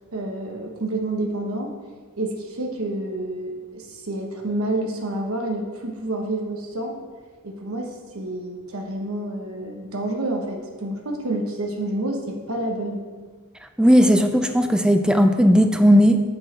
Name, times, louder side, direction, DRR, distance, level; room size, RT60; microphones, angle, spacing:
voice 1, 0.1-1.7 2.2-7.0 7.4-13.0, right 1 dB, 75° right, 1 dB, 1.1 m, -29 dB
voice 2, 13.8-16.2, equal, 5° right, 7 dB, 0.4 m, -16 dB
7.9 x 6.3 x 4.4 m, 1.5 s
head